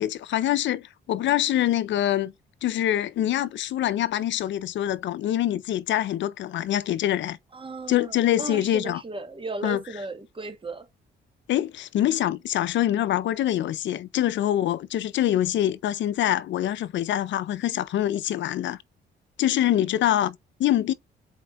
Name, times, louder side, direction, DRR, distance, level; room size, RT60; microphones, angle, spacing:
voice 1, 0.0-2.3 2.6-7.4 7.9-9.0 9.6-9.8 11.5-18.8 19.4-20.9, left 12 dB, 70° left, 0.5 m, -25 dB
voice 2, 7.5-8.1 8.4-10.8 19.7-19.9, right 3 dB, 25° right, 1.3 m, -36 dB
7.7 x 4.3 x 2.9 m
cardioid pair, 90°, 20 cm